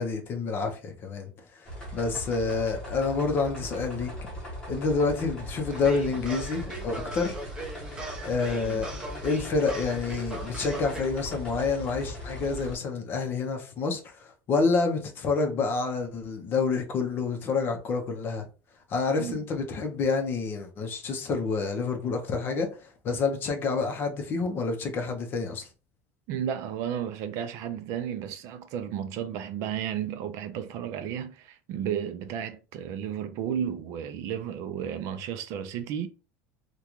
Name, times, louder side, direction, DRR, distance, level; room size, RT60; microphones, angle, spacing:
voice 1, 0.0-1.7 1.9-4.1 4.7-7.4 8.2-8.9 9.2-18.5 18.9-25.7, left 4 dB, 30° left, 0.6 m, -28 dB
sound 1, 1.7-12.8, equal, 10° left, 0.9 m, -39 dB
Playfull Pam pam pim, 5.7-11.0, right 1 dB, 15° right, 0.7 m, -40 dB
voice 2, 26.3-36.1, right 9 dB, 40° right, 0.3 m, -33 dB
3.7 x 2.2 x 3.0 m
cardioid pair, 175°, 8 cm